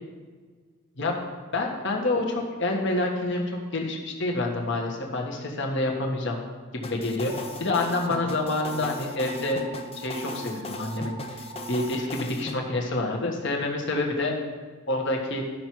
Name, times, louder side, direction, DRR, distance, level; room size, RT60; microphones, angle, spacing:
voice 1, 1.5-6.4 6.7-9.6 10.0-14.3 14.9-15.4, left 2 dB, 55° left, 1 dB, 1.5 m, -28 dB
sound 1, 6.8-12.6, left 2 dB, 25° left, 0.5 m, -37 dB
sound 2, 7.3-12.1, right 4 dB, 20° right, 0.7 m, -42 dB
13.0 x 5.9 x 4.6 m, 1.5 s
head